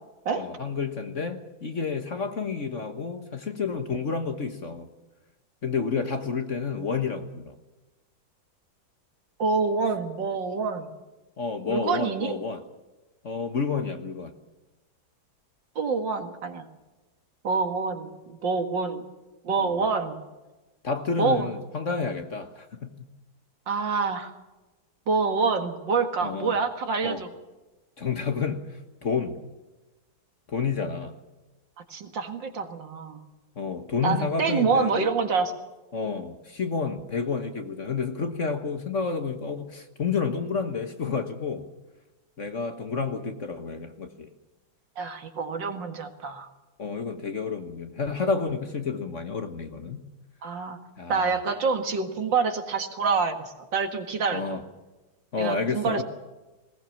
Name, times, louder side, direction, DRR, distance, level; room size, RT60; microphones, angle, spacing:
voice 1, 0.3-4.9 5.6-7.5 11.4-12.6 13.2-14.3 19.6-19.8 20.8-22.9 26.2-26.6 27.0-27.2 28.0-28.6 29.0-29.4 30.5-31.1 33.6-35.1 35.9-41.6 42.4-44.3 46.8-50.0 51.0-51.4 54.3-54.6 55.3-56.0, left 5 dB, 40° left, 7 dB, 1.6 m, -30 dB
voice 2, 9.4-10.9 11.7-12.3 15.8-16.7 17.4-19.0 19.4-20.2 21.2-21.5 23.7-24.3 25.1-27.3 31.9-33.2 34.0-35.5 45.0-46.5 50.4-50.8 51.1-54.6 55.4-56.0, right 4 dB, 65° right, 7 dB, 2.5 m, -26 dB
20.0 x 19.0 x 7.2 m, 1.1 s
omnidirectional pair, 2.1 m